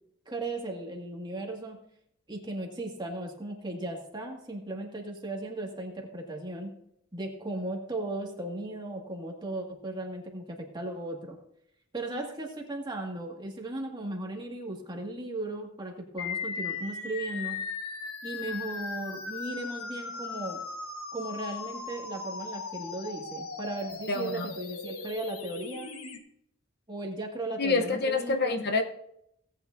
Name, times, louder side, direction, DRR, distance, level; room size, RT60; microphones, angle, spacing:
voice 1, 0.3-1.8 2.3-6.7 7.1-11.4 11.9-17.6 18.2-20.6 21.1-25.9 26.9-28.7, right 2 dB, 20° right, 0 dB, 2.0 m, -36 dB
sound 1, 16.2-26.2, left 4 dB, 85° left, 1.4 m, -38 dB
voice 2, 24.1-24.5 27.6-28.8, left 3 dB, 50° left, 6 dB, 0.9 m, -27 dB
17.5 x 9.2 x 2.7 m, 0.74 s
head